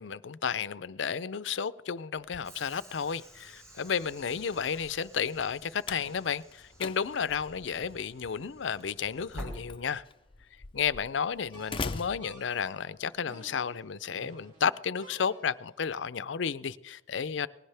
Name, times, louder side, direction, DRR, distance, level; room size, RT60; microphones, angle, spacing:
voice 1, 0.0-10.0 10.7-17.5, left 6 dB, 80° left, 0.5 m, -32 dB
Slam, 2.2-13.1, left 4 dB, 30° left, 0.5 m, -45 dB
Train / Sliding door, 2.4-10.4, equal, 15° right, 5.1 m, -49 dB
sound 1, 11.5-15.8, right 2 dB, 45° right, 3.3 m, -54 dB
19.5 x 16.5 x 3.4 m
head